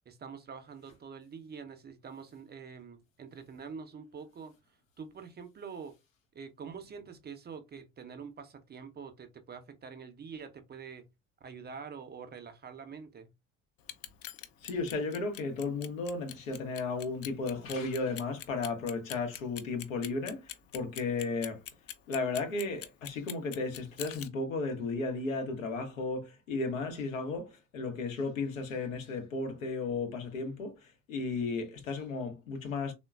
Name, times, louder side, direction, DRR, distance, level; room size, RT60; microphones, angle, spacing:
voice 1, 0.1-4.5 5.0-5.9 6.3-11.1 11.4-13.3, right 6 dB, 25° right, 0.6 m, -46 dB
Clock, 13.8-24.3, left 11 dB, 40° left, 0.5 m, -43 dB
voice 2, 14.6-20.4 20.7-21.6 22.1-30.7 31.1-32.9, left 3 dB, 80° left, 0.8 m, -34 dB
3.6 x 2.2 x 2.3 m
figure-of-eight pair, 50°, 39 cm